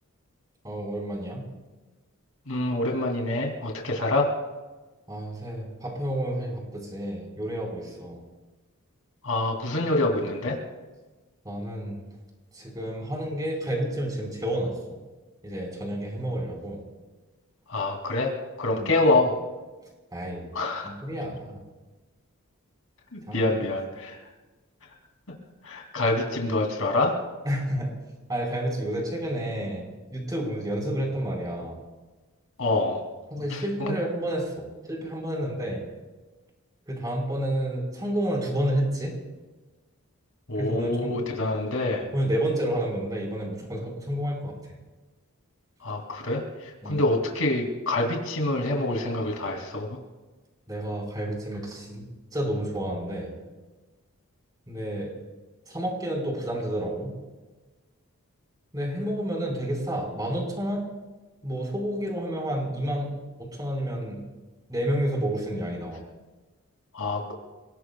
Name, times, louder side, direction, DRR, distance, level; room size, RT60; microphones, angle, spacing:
voice 1, 0.6-1.5 5.1-8.2 11.4-12.0 12.5-14.7 15.4-16.8 18.7-18.9 20.1-20.5 20.8-21.6 23.3-23.4 27.4-27.9 28.3-31.8 33.3-35.8 36.9-39.1 40.5-41.2 42.1-44.5 46.8-47.0 50.7-52.1 52.3-53.3 54.7-55.1 55.7-57.2 58.7-60.8 61.4-64.2 64.7-66.0, right 1 dB, 20° right, 0 dB, 4.4 m, -30 dB
voice 2, 2.5-4.3 9.2-10.6 17.7-18.3 18.6-19.3 20.5-20.9 23.1-24.2 25.6-27.1 32.6-33.0 33.5-33.9 40.5-42.1 45.8-50.0 66.9-67.3, left 2 dB, 75° left, 1 dB, 2.7 m, -26 dB
28.5 x 18.0 x 2.3 m, 1.2 s
head